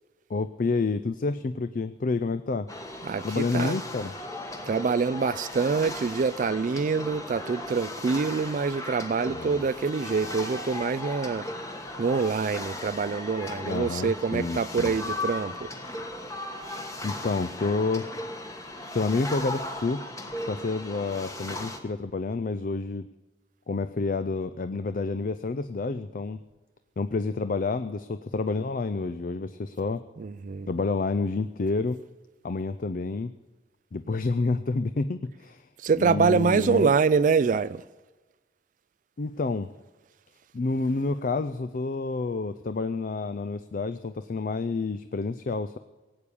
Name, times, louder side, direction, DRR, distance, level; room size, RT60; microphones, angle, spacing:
voice 1, 0.3-2.7 3.2-4.1 9.3-9.6 13.7-14.9 17.0-18.1 18.9-20.0 20.5-23.1 23.7-26.4 27.0-30.0 30.7-32.0 32.4-33.3 33.9-35.6 36.0-36.9 39.2-39.7 40.5-45.8, left 3 dB, 50° left, 0.4 m, -29 dB
sound 1, 2.7-21.8, left 1 dB, 20° left, 1.3 m, -37 dB
voice 2, 3.0-3.8 4.7-11.5 12.0-15.7 30.2-30.7 35.8-37.8, right 5 dB, 45° right, 0.3 m, -25 dB
18.0 x 8.6 x 6.9 m
head